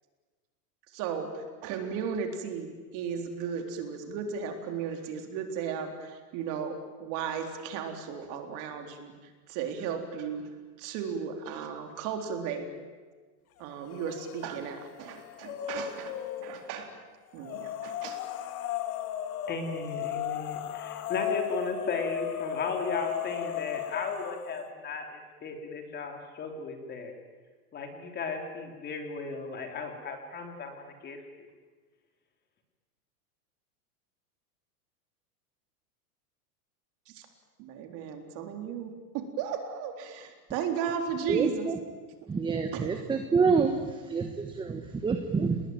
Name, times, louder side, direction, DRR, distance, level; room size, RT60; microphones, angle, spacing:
voice 1, 0.9-10.5 10.8-12.7 13.6-16.9 17.3-18.2 37.1-37.3 37.6-41.7 42.7-42.9, right 7 dB, 40° right, 5 dB, 3.9 m, -35 dB
sound 1, 13.9-14.5 14.8-16.7 17.4-24.6, left 10 dB, 65° left, 2.3 m, -35 dB
voice 2, 19.5-27.1 27.7-31.2, left 4 dB, 20° left, 4 dB, 3.4 m, -36 dB
voice 3, 41.3-41.7 42.3-43.7 44.1-45.6, right 5 dB, 10° right, 6 dB, 1.2 m, -27 dB
29.0 x 20.5 x 9.2 m, 1.4 s
supercardioid pair, 155°, 46 cm